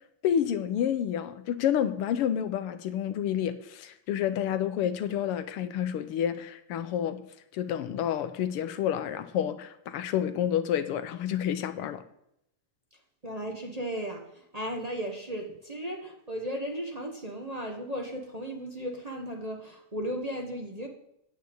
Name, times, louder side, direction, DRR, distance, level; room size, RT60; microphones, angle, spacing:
voice 1, 0.2-7.2 7.5-12.0, left 9 dB, 85° left, 1.8 m, -29 dB
voice 2, 13.2-20.9, equal, 20° right, 1.3 m, -35 dB
9.5 x 9.1 x 8.0 m
omnidirectional pair, 2.4 m